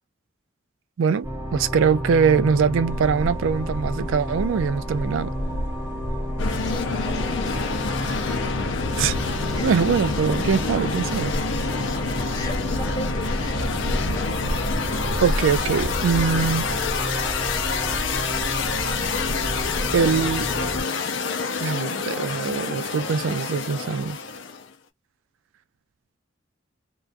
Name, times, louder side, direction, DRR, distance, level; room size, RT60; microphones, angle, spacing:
voice 1, 1.0-5.3 9.0-9.4 9.6-11.3 15.2-16.7 19.9-20.5 21.6-24.2, right 6 dB, 90° right, 0.3 m, -22 dB
sound 1, 1.2-20.8, equal, 15° right, 1.0 m, -32 dB
sound 2, 2.9-20.2, equal, 60° right, 0.7 m, -33 dB
sound 3, 6.4-24.7, left 5 dB, 75° left, 0.5 m, -28 dB
voice 2, 6.5-8.5 9.5-9.9 11.6-14.6, left 2 dB, 20° left, 0.8 m, -39 dB
2.3 x 2.3 x 2.5 m
head